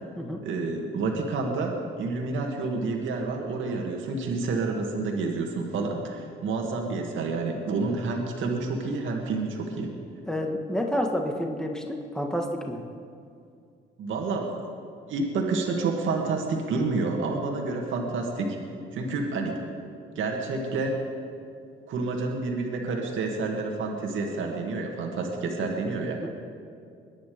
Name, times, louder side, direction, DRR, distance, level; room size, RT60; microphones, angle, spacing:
voice 1, 0.4-1.7 2.0-9.9 14.0-14.6 15.1-18.6 18.9-19.6 20.2-21.0 21.9-26.2, right 3 dB, 75° right, 1 dB, 2.2 m, -29 dB
voice 2, 10.3-12.8 26.2-26.3, equal, 5° left, 2 dB, 1.7 m, -29 dB
22.5 x 10.0 x 5.2 m, 2.4 s
cardioid pair, 90°, 20 cm